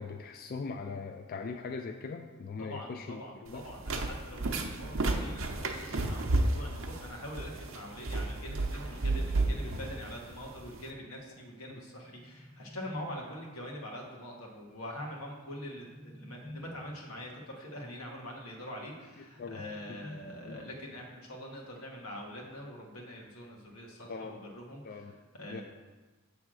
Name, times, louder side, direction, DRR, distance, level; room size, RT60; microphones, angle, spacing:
voice 1, 0.0-3.6 19.4-19.6 20.5-20.6 24.1-24.4 24.9-25.1 25.5-25.6, left 4 dB, 40° left, 5 dB, 0.3 m, -40 dB
voice 2, 2.6-25.6, equal, 90° left, 0 dB, 1.4 m, -44 dB
sound 1, 3.5-10.9, right 2 dB, 65° right, 0.7 m, -32 dB
sound 2, 11.6-13.6 15.3-17.2 19.0-21.0, left 1 dB, 5° right, 0.7 m, -50 dB
7.4 x 3.5 x 6.2 m, 1.3 s
head